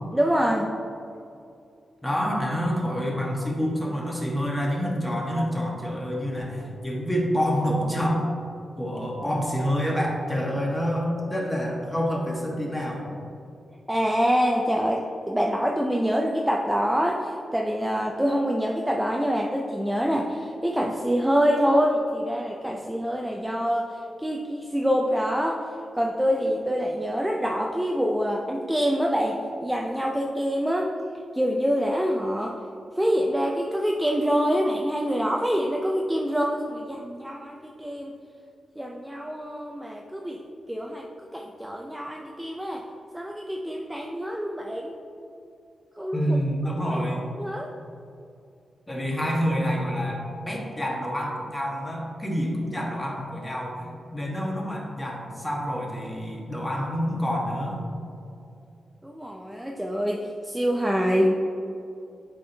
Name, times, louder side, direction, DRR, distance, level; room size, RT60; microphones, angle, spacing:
voice 1, 0.1-0.7 13.9-25.7 25.9-30.9 31.3-32.6 33.0-38.1 38.8-40.4 40.7-41.1 41.3-42.8 43.1-45.0 46.0-46.2 46.9-47.0 47.4-47.7 59.0-61.3, equal, 5° right, 0 dB, 0.4 m, -25 dB
voice 2, 2.0-8.3 8.8-13.1 46.1-47.3 48.9-57.8, equal, 15° left, -2 dB, 1.1 m, -27 dB
8.3 x 4.3 x 2.7 m, 2.6 s
wide cardioid pair, 115°, 0 cm